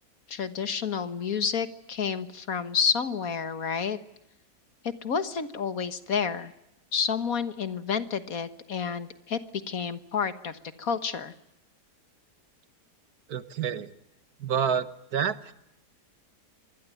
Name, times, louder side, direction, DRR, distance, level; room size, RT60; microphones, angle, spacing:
voice 1, 0.3-4.0 4.8-6.5 6.9-9.4 9.7-11.3, left 6 dB, 60° left, 12 dB, 1.8 m, -30 dB
voice 2, 13.3-13.9 14.4-15.5, right 7 dB, 65° right, 14 dB, 1.7 m, -28 dB
26.0 x 20.0 x 9.3 m, 0.84 s
omnidirectional pair, 1.7 m